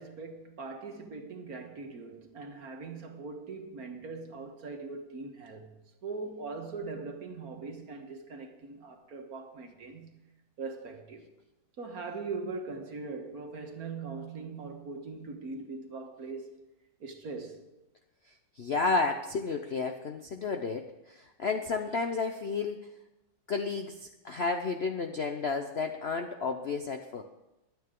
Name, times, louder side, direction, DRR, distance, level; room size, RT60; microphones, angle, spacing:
voice 1, 0.0-5.7 6.0-10.3 10.6-11.3 11.8-16.6 17.0-17.6, right 4 dB, 55° right, 1.8 m, -41 dB
voice 2, 18.6-22.9 23.5-27.2, left 4 dB, 55° left, 0.7 m, -32 dB
22.5 x 8.9 x 3.8 m
omnidirectional pair, 2.0 m